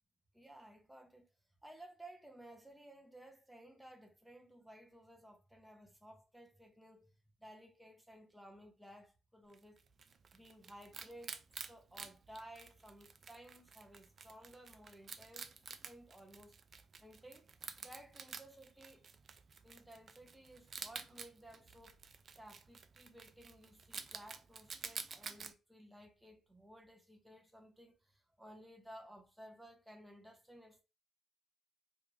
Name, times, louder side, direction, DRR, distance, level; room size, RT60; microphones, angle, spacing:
voice 1, 0.3-1.3 1.6-7.1 7.4-9.8 10.3-15.5 15.8-16.6 17.0-17.5 17.8-19.1 19.6-22.0 22.3-30.8, right 1 dB, 5° right, 0.8 m, -57 dB
Wild animals, 9.5-25.5, right 5 dB, 50° right, 0.4 m, -51 dB
3.3 x 2.5 x 3.2 m
cardioid pair, 90°, 0 cm